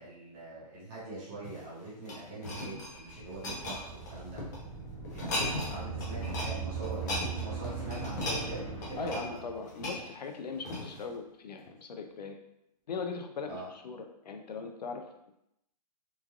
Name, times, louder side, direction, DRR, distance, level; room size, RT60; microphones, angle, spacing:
voice 1, 0.0-4.4 5.1-9.5 13.5-13.7, right 2 dB, 15° right, -9 dB, 0.8 m, -43 dB
sound 1, 1.4-4.6 5.0-5.7 6.0-6.5 6.8-11.1 11.7-11.8, left 1 dB, 25° left, 0.6 m, -37 dB
sound 2, 2.9-9.8, right 5 dB, 10° left, 1.0 m, -40 dB
voice 2, 9.0-12.4 12.9-15.3, left 5 dB, 90° left, 5 dB, 0.5 m, -40 dB
3.1 x 2.4 x 2.3 m, 0.81 s
hypercardioid pair, 165°, 21 cm